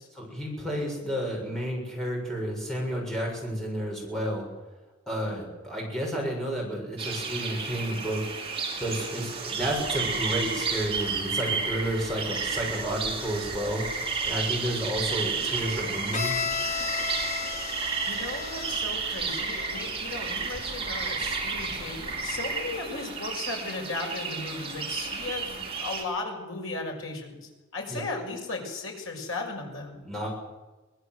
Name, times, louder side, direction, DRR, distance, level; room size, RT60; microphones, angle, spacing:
voice 1, 0.1-4.5 5.1-8.2 8.8-13.8 14.2-16.4 27.9-28.0 30.0-30.3, equal, ahead, -2 dB, 7.3 m, -31 dB
sound 1, 7.0-26.0, right 4 dB, 25° right, 4.3 m, -32 dB
Bowed string instrument, 16.1-19.9, left 6 dB, 35° left, 1.1 m, -34 dB
voice 2, 18.1-30.0, left 3 dB, 75° left, 2 dB, 6.1 m, -36 dB
24.0 x 19.5 x 8.0 m, 1.2 s
head